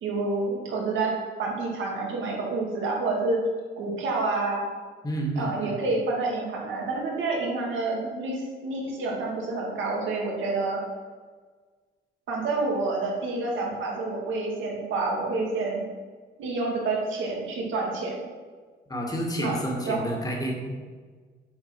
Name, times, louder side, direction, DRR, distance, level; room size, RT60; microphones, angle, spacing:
voice 1, 0.0-3.4 3.8-4.6 5.4-10.8 12.3-15.8 16.4-18.1 19.4-19.6 19.9-20.0, right 3 dB, 75° right, -2 dB, 2.1 m, -28 dB
voice 2, 5.0-5.8 18.9-20.7, right 1 dB, 20° left, -1 dB, 1.9 m, -29 dB
7.4 x 4.5 x 5.9 m, 1.5 s
cardioid pair, 90°, 20 cm